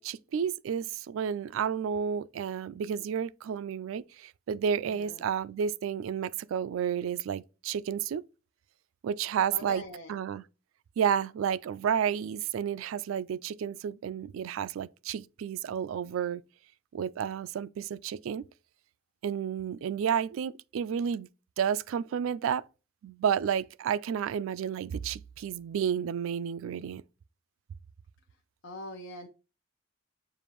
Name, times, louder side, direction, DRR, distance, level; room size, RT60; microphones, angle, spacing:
voice 1, 0.0-8.2 9.0-9.8 10.1-10.4 11.0-16.4 16.9-18.5 19.2-21.3 21.6-22.6 23.0-27.0, right 8 dB, 80° right, 0.3 m, -31 dB
voice 2, 4.9-5.2 9.5-10.2 28.6-29.3, left 1 dB, 70° left, 0.7 m, -42 dB
7.0 x 2.5 x 3.0 m
head